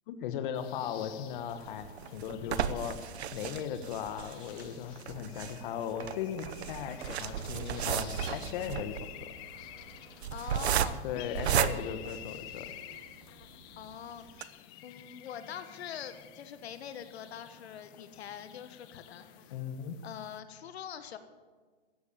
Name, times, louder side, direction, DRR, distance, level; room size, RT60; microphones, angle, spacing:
voice 1, 0.1-3.0 3.3-9.3 11.0-12.7 19.5-20.0, left 8 dB, 50° left, 8 dB, 1.2 m, -37 dB
sound 1, 0.5-20.4, left 12 dB, 15° left, 0.3 m, -51 dB
sound 2, 1.5-12.9 13.4-13.5 13.8-13.9 14.3-14.4, right 9 dB, 75° right, 0.9 m, -34 dB
Engine, 3.7-20.7, right 2 dB, 10° right, 2.5 m, -62 dB
voice 2, 10.3-11.0 13.8-19.5 20.0-21.2, left 9 dB, 70° left, 10 dB, 1.3 m, -44 dB
14.0 x 8.3 x 8.4 m, 1.4 s
hypercardioid pair, 140°, 33 cm